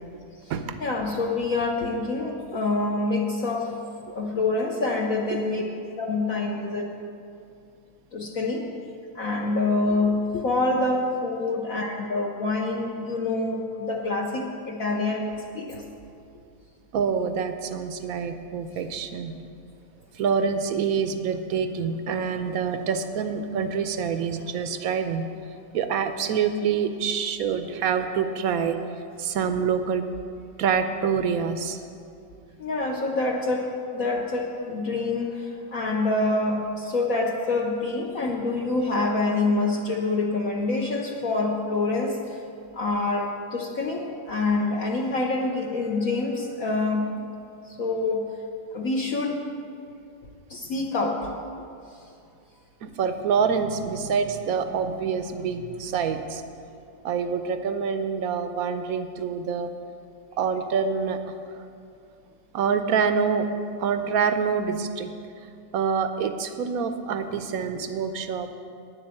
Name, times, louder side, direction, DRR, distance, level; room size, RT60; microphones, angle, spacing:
voice 1, 0.8-3.7 4.1-5.6 6.0-6.9 8.1-8.7 9.1-15.8 32.6-42.4 42.7-47.3 47.7-48.3 48.7-49.4 50.5-51.3, left 3 dB, 55° left, 0 dB, 1.2 m, -26 dB
voice 2, 16.9-19.3 20.1-25.3 25.7-28.8 29.2-30.0 30.6-31.8 52.8-56.4 57.0-59.7 60.4-61.4 62.5-63.5 63.8-65.1 65.7-68.5, right 6 dB, 65° right, 9 dB, 1.0 m, -26 dB
10.0 x 8.0 x 7.6 m, 2.5 s
omnidirectional pair, 1.9 m